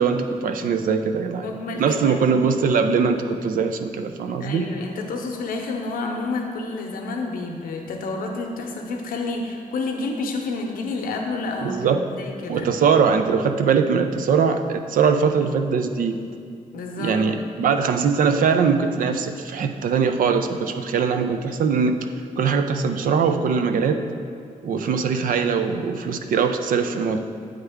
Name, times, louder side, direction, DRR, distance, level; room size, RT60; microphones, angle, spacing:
voice 1, 0.0-1.4 1.8-4.7 11.6-12.1 12.5-16.2 17.0-22.0 22.4-24.0 24.6-27.2, right 6 dB, 75° right, 7 dB, 0.4 m, -21 dB
voice 2, 1.4-2.3 4.4-12.7 16.7-17.2, left 3 dB, 90° left, 2 dB, 0.7 m, -29 dB
8.9 x 3.4 x 3.5 m, 2.3 s
cardioid pair, 110°, 14 cm